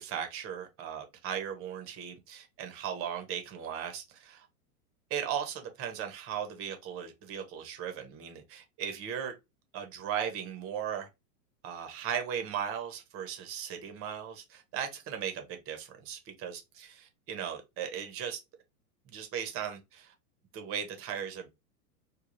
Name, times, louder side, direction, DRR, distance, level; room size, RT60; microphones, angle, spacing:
voice 1, 0.0-4.5 5.1-9.3 9.7-11.1 11.6-18.4 19.1-20.1 20.5-21.5, right 8 dB, 30° right, 0.8 m, -37 dB
3.2 x 2.3 x 2.5 m
hypercardioid pair, 120°, 47 cm